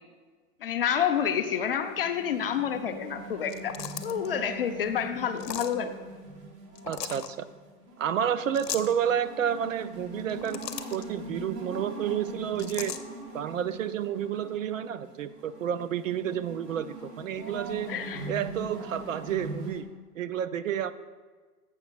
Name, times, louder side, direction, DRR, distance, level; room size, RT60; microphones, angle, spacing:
voice 1, 0.6-3.8 4.0-5.9 17.4-17.5 17.9-18.3, left 8 dB, 40° left, 7 dB, 0.5 m, -29 dB
sound 1, 1.0-19.8, right 2 dB, 90° right, 1.9 m, -42 dB
sound 2, 3.4-4.3 5.4-5.8 6.8-7.3 8.5-8.9 10.2-11.0 12.6-13.0, left 8 dB, 90° left, 0.8 m, -37 dB
voice 2, 6.9-7.5 8.0-10.6 10.9-12.9 13.3-17.9 18.3-19.9 20.2-20.9, right 9 dB, 55° right, 13 dB, 0.5 m, -30 dB
7.4 x 5.7 x 6.0 m, 1.4 s
hypercardioid pair, 140°, 47 cm